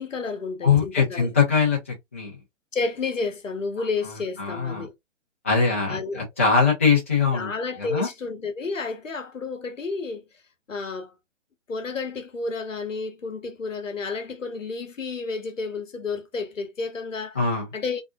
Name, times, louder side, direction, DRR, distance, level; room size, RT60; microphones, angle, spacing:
voice 1, 0.0-1.3 2.7-4.9 5.9-6.3 7.3-10.2 10.7-11.1 11.7-17.4 17.7-18.0, left 4 dB, 80° left, 0.8 m, -31 dB
voice 2, 0.6-2.4 4.4-4.9 5.4-7.5 7.8-8.1 17.3-17.7, left 5 dB, 10° left, 0.4 m, -22 dB
2.6 x 2.1 x 2.3 m
figure-of-eight pair, 130°, 37 cm